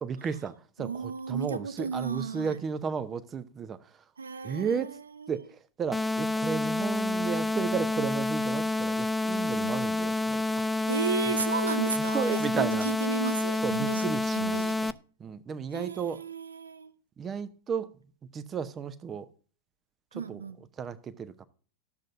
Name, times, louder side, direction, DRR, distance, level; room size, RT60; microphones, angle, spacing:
voice 1, 0.0-4.0 4.4-5.0 5.3-10.6 11.3-11.4 12.1-12.9 13.6-14.9 15.2-16.2 17.2-17.9 18.3-19.3 20.1-20.4 20.8-21.5, right 6 dB, 25° right, 0.8 m, -34 dB
voice 2, 0.8-2.6 4.2-5.3 9.6-9.8 10.9-15.0 15.7-16.9 20.1-20.6, right 5 dB, 75° right, 0.5 m, -34 dB
sound 1, 5.9-14.9, left 2 dB, 5° left, 0.3 m, -29 dB
13.0 x 7.5 x 2.5 m
figure-of-eight pair, 90°, 0 cm